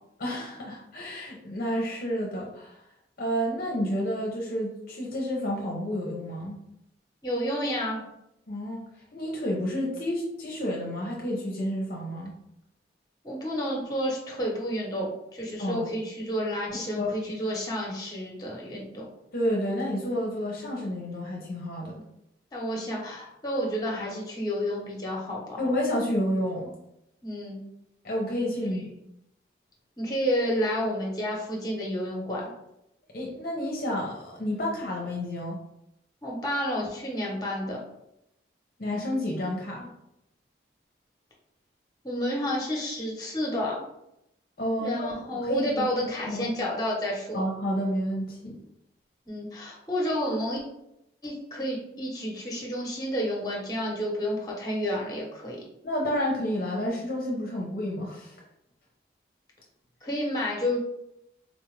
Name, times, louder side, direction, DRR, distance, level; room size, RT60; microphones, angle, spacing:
voice 1, 0.2-2.8 3.2-6.6 8.5-8.8 9.1-12.4 15.6-15.9 16.7-17.1 19.3-22.0 25.6-26.7 28.0-28.9 33.1-35.6 38.8-39.9 44.6-45.9 46.3-46.5 47.3-48.6 55.8-58.4, equal, 50° left, -2 dB, 0.6 m, -30 dB
voice 2, 7.2-8.0 13.2-19.1 22.5-25.6 27.2-27.6 30.0-32.4 36.2-37.8 42.0-43.8 44.8-47.4 49.3-50.6 51.2-55.6 60.0-60.8, equal, 20° left, -2 dB, 0.9 m, -30 dB
3.8 x 2.4 x 3.1 m, 0.81 s
head